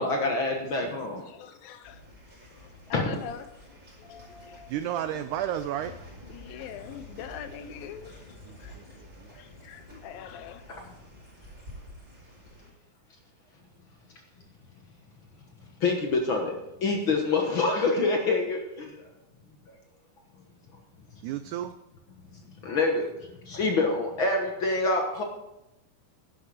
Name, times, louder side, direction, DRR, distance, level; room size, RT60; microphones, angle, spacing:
voice 1, 0.0-1.2 2.9-3.1 10.7-10.9 15.8-16.5 16.8-19.1 19.7-19.8 22.3-25.2, left 3 dB, 60° left, 2 dB, 1.3 m, -26 dB
voice 2, 1.3-2.0 2.9-3.4 4.0-4.7 6.3-8.1 8.6-8.7 9.4-10.6, left 8 dB, 85° left, 10 dB, 2.6 m, -42 dB
sound 1, 1.8-12.7, left 1 dB, 25° right, 5.3 m, -49 dB
voice 3, 4.7-5.9 8.5-8.8 9.2-9.4 21.2-21.7, right 11 dB, 90° right, 11 dB, 1.7 m, -32 dB
11.5 x 10.5 x 4.9 m, 0.87 s
omnidirectional pair, 4.1 m